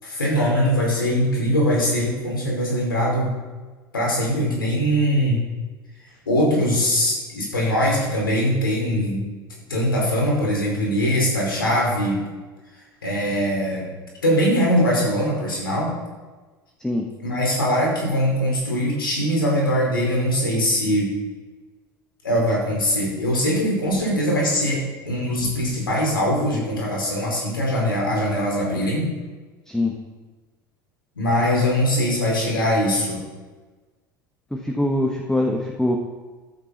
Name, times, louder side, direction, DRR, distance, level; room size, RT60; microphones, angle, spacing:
voice 1, 0.0-3.3 3.9-5.4 6.2-9.2 9.7-12.2 13.0-13.8 14.2-15.9 17.2-21.1 22.2-29.2 31.1-33.2, equal, 80° left, -2 dB, 5.0 m, -21 dB
voice 2, 34.5-36.0, left 1 dB, 5° left, 2 dB, 1.5 m, -23 dB
14.5 x 13.0 x 4.2 m, 1.3 s
figure-of-eight pair, 70°, 12 cm